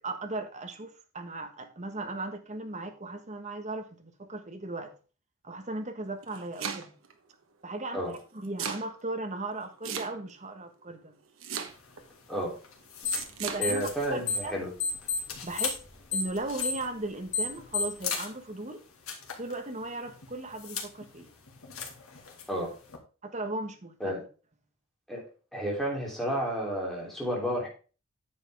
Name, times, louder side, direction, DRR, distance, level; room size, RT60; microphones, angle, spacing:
voice 1, 0.0-4.9 5.4-6.9 7.6-11.1 13.4-14.5 15.4-15.8 16.1-18.8 19.4-21.3 23.2-24.2, right 2 dB, 35° right, 6 dB, 1.4 m, -37 dB
Domestic sounds home sounds, 6.1-7.1 8.1-8.9 9.8-10.5 11.4-12.0 13.1-13.6, right 7 dB, 75° right, 1.2 m, -36 dB
sound 1, 11.7-23.0, left 6 dB, 90° left, 2.1 m, -43 dB
sound 2, 13.0-13.3 13.6-14.5 14.8-18.0, left 5 dB, 60° left, 2.8 m, -30 dB
voice 2, 13.6-14.7 22.5-22.7 24.0-24.2 25.1-25.2 25.5-27.7, equal, ahead, -3 dB, 3.4 m, -31 dB
9.6 x 7.4 x 3.5 m, 0.36 s
head